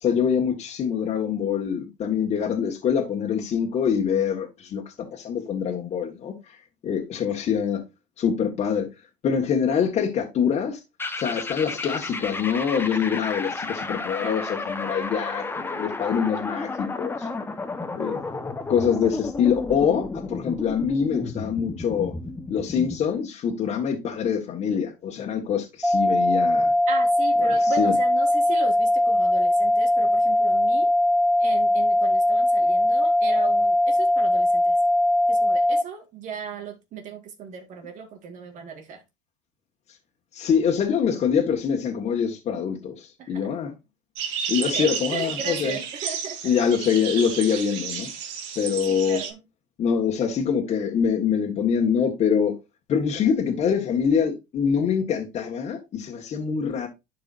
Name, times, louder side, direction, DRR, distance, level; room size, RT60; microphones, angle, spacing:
voice 1, 0.0-6.6 6.8-7.8 8.2-8.9 9.2-10.8 11.2-17.3 17.9-18.2 18.7-22.1 22.5-26.7 27.4-27.9 40.3-43.7 44.5-45.8 46.4-48.1 48.6-49.2 49.8-52.6 52.9-56.9, left 7 dB, 45° left, 1.8 m, -24 dB
sound 1, 11.0-23.1, left 3 dB, 15° left, 1.1 m, -32 dB
sound 2, 25.8-35.8, left 1 dB, 5° right, 0.7 m, -20 dB
voice 2, 26.9-30.9 31.4-34.8 35.3-39.0 43.2-43.5 44.6-46.5 48.9-49.4, right 6 dB, 50° right, 1.9 m, -36 dB
sound 3, 44.2-49.3, right 7 dB, 70° right, 1.9 m, -32 dB
12.0 x 4.7 x 2.6 m
supercardioid pair, 95°, 16 cm